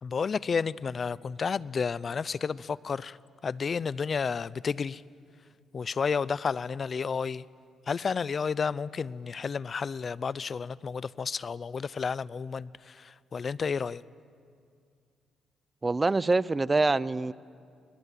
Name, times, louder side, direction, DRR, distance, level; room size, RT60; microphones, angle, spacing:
voice 1, 0.0-3.2 3.4-5.0 5.7-7.4 7.9-14.0, left 5 dB, 40° left, 20 dB, 0.6 m, -31 dB
voice 2, 15.8-17.3, right 3 dB, 25° right, 19 dB, 0.6 m, -25 dB
29.5 x 22.0 x 8.4 m, 2.3 s
cardioid pair, 90°, 0 cm